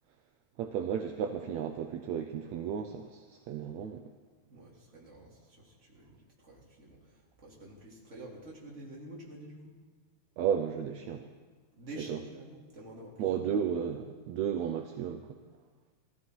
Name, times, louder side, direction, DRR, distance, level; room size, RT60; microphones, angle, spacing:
voice 1, 0.6-4.0 10.4-11.3 12.1-12.2 13.2-15.4, right 8 dB, 75° right, 6 dB, 1.9 m, -33 dB
voice 2, 4.5-9.8 11.7-13.4, right 1 dB, 25° right, -4 dB, 3.1 m, -48 dB
19.0 x 14.5 x 4.6 m, 1.3 s
omnidirectional pair, 3.4 m